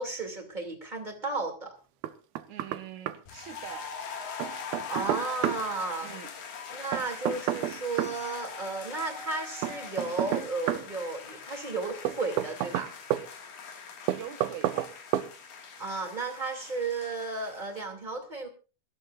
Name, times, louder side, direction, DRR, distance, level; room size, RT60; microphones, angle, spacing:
voice 1, 0.0-1.7 4.9-6.1 6.7-12.9 15.8-18.5, right 3 dB, 15° right, 1.7 m, -34 dB
Knock, 2.0-2.8 3.1-3.2 4.4-5.6 6.9-8.2 9.6-10.9 12.1-13.3 14.1-14.9 15.1-15.3, right 13 dB, 75° right, 2.4 m, -29 dB
voice 2, 2.5-3.9 6.0-6.3 14.1-14.9, right 10 dB, 55° right, 2.3 m, -43 dB
sound 1, 3.3-17.9, left 6 dB, 55° left, 3.3 m, -42 dB
24.0 x 14.0 x 2.5 m
omnidirectional pair, 5.0 m